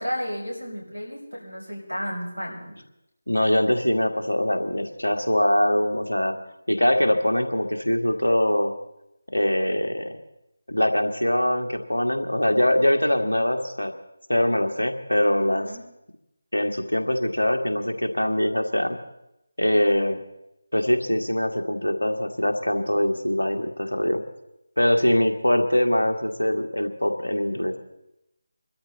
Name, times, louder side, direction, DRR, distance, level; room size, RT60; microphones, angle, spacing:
voice 1, 0.0-2.8 15.6-15.8, equal, 85° right, -2 dB, 6.9 m, -32 dB
voice 2, 3.3-6.4 6.7-8.7 9.3-10.1 10.7-13.9 14.3-15.7 16.5-19.0 19.6-20.2 20.7-24.2 24.8-27.8, left 1 dB, 80° left, 5 dB, 1.8 m, -23 dB
25.0 x 13.0 x 4.1 m, 0.87 s
figure-of-eight pair, 160°, 0 cm